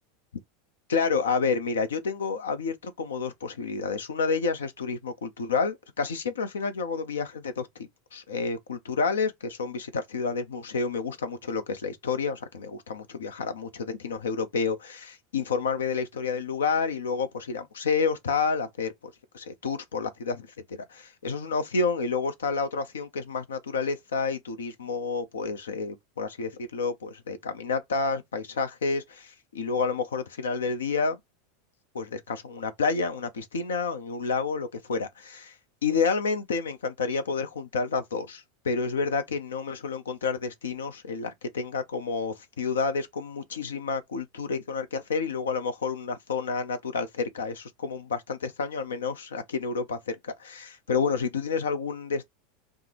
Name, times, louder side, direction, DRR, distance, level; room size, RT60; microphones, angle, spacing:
voice 1, 0.9-7.7 8.1-20.5 20.9-31.2 31.9-35.5 35.8-52.3, left 5 dB, 80° left, 0.6 m, -29 dB
3.5 x 2.0 x 2.9 m
hypercardioid pair, 90°, 0 cm